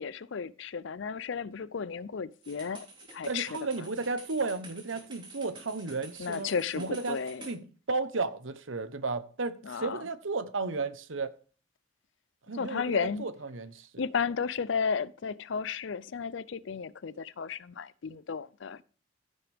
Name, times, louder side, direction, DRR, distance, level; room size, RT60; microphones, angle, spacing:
voice 1, 0.0-3.6 6.2-7.5 9.6-10.0 12.5-13.2 14.0-18.8, left 6 dB, 65° left, 0.5 m, -33 dB
sound 1, 2.4-7.6, right 3 dB, 25° right, 3.2 m, -49 dB
voice 2, 3.3-7.2 7.5-11.3 12.5-14.0, right 3 dB, 75° right, 1.0 m, -34 dB
14.5 x 7.8 x 3.5 m
head